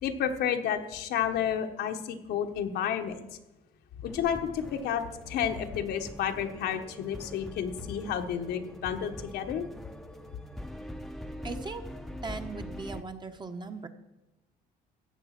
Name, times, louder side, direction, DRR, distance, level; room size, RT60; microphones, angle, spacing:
voice 1, 0.0-3.2 4.0-9.6, left 8 dB, 75° left, 5 dB, 1.3 m, -31 dB
sound 1, 4.1-13.0, equal, ahead, 0.8 m, -43 dB
voice 2, 11.4-11.8 12.2-13.9, right 4 dB, 25° right, 7 dB, 1.2 m, -38 dB
14.5 x 8.5 x 6.0 m, 0.99 s
cardioid pair, 110°, 17 cm